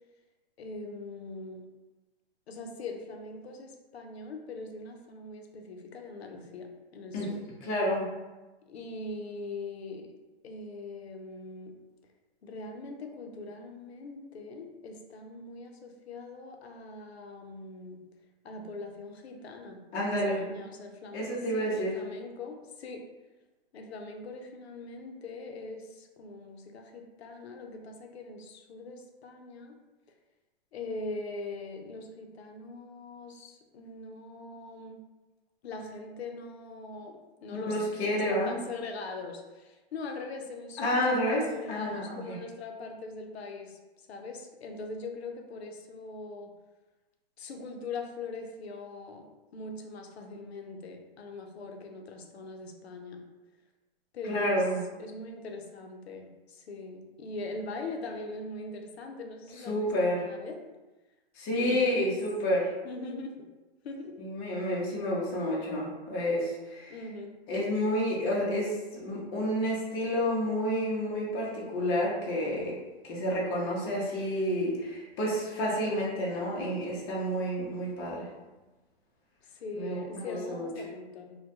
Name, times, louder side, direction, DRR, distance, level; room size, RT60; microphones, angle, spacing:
voice 1, 0.6-1.6 2.5-7.4 8.7-10.1 10.4-11.7 12.4-18.0 18.4-21.2 21.5-23.0 23.7-29.8 30.7-35.0 35.6-43.8 44.1-46.5 47.4-49.3 49.5-53.2 54.1-54.6 55.0-60.6 61.5-61.9 62.8-63.5 63.8-64.2 66.9-67.3 79.4-81.4, left 3 dB, 90° left, 3 dB, 0.5 m, -41 dB
voice 2, 7.6-8.1 19.9-20.4 21.1-22.0 37.5-38.6 40.8-42.4 54.2-54.8 59.7-60.2 61.3-62.7 64.2-66.9 67.5-72.7 73.0-78.3 79.7-80.7, equal, 30° left, -5 dB, 0.6 m, -30 dB
2.2 x 2.1 x 2.7 m, 1.1 s
hypercardioid pair, 125°, 31 cm